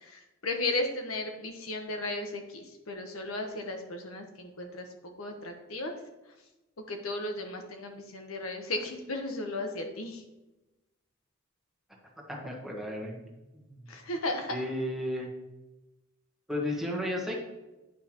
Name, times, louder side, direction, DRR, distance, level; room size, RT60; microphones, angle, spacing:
voice 1, 0.0-4.9 5.2-5.9 6.9-10.2 13.9-14.6, left 2 dB, 85° left, 4 dB, 1.0 m, -35 dB
voice 2, 12.3-13.2 13.5-13.7 14.5-15.3 16.5-17.4, left 1 dB, ahead, -2 dB, 1.2 m, -33 dB
8.7 x 5.6 x 3.0 m, 1.0 s
head